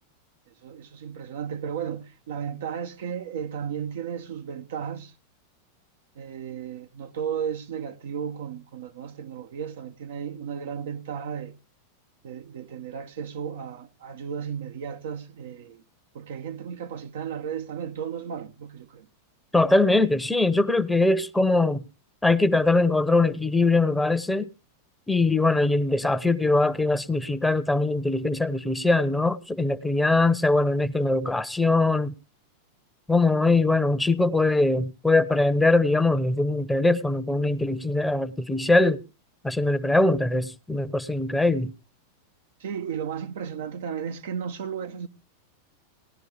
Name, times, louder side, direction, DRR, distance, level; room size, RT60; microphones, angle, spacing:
voice 1, 0.5-5.1 6.1-11.5 12.2-15.8 16.1-19.1 42.6-45.1, right 7 dB, 70° right, 1.0 m, -34 dB
voice 2, 19.5-21.8 22.2-24.5 25.1-32.1 33.1-39.0 39.4-41.7, left 2 dB, 5° left, 0.9 m, -22 dB
18.5 x 10.5 x 3.4 m
hypercardioid pair, 100°, 0 cm